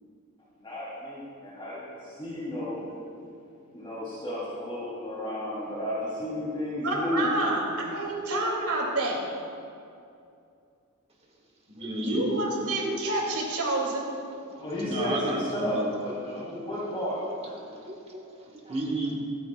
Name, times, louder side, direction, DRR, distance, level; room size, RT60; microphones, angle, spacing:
voice 1, 0.6-2.9 3.7-7.3 14.6-17.2 17.4-17.6, left 1 dB, 20° left, -11 dB, 3.4 m, -32 dB
voice 2, 6.8-9.2 11.9-14.1, right 2 dB, 90° right, -2 dB, 2.8 m, -28 dB
voice 3, 11.7-12.5 13.1-13.2 14.3-15.8 16.2-16.5 17.6-19.2, right 1 dB, 30° right, 0 dB, 1.5 m, -34 dB
26.0 x 9.4 x 2.4 m, 2.5 s
head